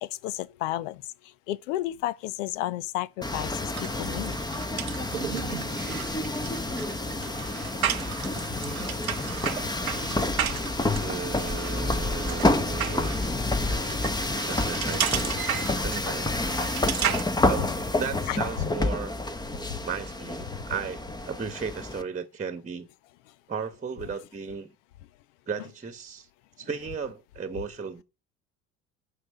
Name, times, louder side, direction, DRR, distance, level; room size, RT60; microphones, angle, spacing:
voice 1, 0.0-4.4 6.7-6.8 7.8-8.1 8.5-8.6 9.1-9.5 17.6-17.7 18.3-18.4 19.7-19.8, left 14 dB, 65° left, 0.7 m, -33 dB
sound 1, 3.2-22.0, left 2 dB, 10° left, 1.0 m, -29 dB
sound 2, 3.7-17.2, right 10 dB, 90° right, 0.7 m, -34 dB
voice 2, 11.0-13.1 14.4-15.4 15.8-16.3 17.4-19.1 19.8-22.9 23.5-24.7 25.5-26.3 26.6-28.0, right 6 dB, 20° right, 1.3 m, -35 dB
9.6 x 5.7 x 6.7 m
figure-of-eight pair, 65°, 41 cm